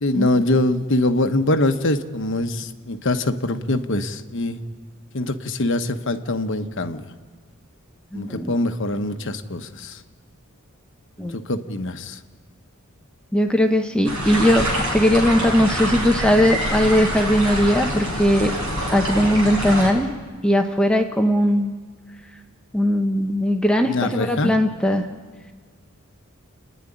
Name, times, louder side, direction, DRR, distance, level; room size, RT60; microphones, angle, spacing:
voice 1, 0.0-4.6 5.1-7.0 8.1-10.0 11.2-12.2 23.8-24.5, left 2 dB, 60° left, 8 dB, 1.1 m, -23 dB
voice 2, 8.1-8.5 11.2-11.4 13.3-18.5 18.9-20.1 20.4-21.7 22.7-25.1, equal, 5° left, 4 dB, 0.9 m, -19 dB
sound 1, 14.0-19.9, equal, 65° right, 6.6 m, -25 dB
29.0 x 10.5 x 10.0 m, 1.5 s
head